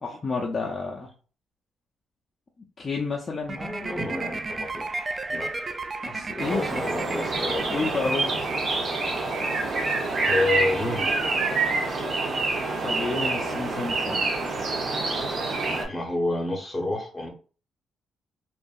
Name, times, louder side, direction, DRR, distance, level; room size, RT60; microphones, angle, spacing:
voice 1, 0.0-1.1 2.8-3.6 6.0-6.8 7.7-8.3 12.8-14.2, left 4 dB, 35° left, -2 dB, 0.5 m, -30 dB
voice 2, 3.5-4.9 5.3-5.5 6.5-7.8 10.2-11.1 15.9-17.3, left 2 dB, 15° left, 1 dB, 0.8 m, -29 dB
sound 1, 3.5-8.7, right 3 dB, 30° right, 0.3 m, -34 dB
sound 2, 6.4-15.9, right 3 dB, 50° right, 0.8 m, -27 dB
2.6 x 2.4 x 2.3 m, 0.38 s
cardioid pair, 90°, 0 cm